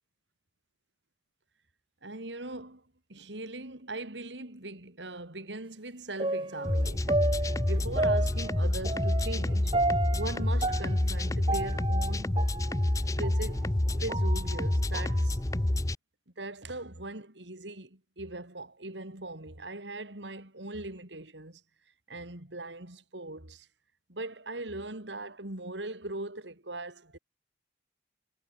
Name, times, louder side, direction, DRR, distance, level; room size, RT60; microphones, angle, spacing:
voice 1, 2.0-2.8 3.1-7.3 7.7-12.4 13.2-13.7 14.0-15.4 16.4-21.6 22.1-23.7 24.1-27.2, right 2 dB, 90° right, 4.1 m, -40 dB
sound 1, 6.2-13.4 13.9-15.2 15.6-15.7, right 2 dB, 30° right, 1.4 m, -32 dB
sound 2, 6.6-15.9, left 1 dB, 20° left, 0.6 m, -28 dB
head